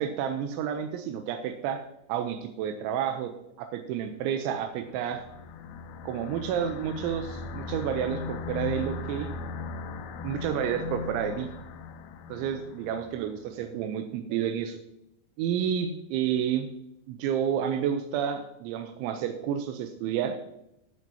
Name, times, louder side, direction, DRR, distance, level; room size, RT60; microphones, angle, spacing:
voice 1, 0.0-1.8 2.1-3.3 3.6-5.2 6.0-9.3 10.2-11.5 12.3-14.8 15.4-16.7 17.1-20.4, right 9 dB, 85° right, 6 dB, 3.0 m, -30 dB
sound 1, 4.6-13.2, left 4 dB, 85° left, 2.2 m, -38 dB
14.5 x 9.0 x 2.8 m, 0.82 s
omnidirectional pair, 5.4 m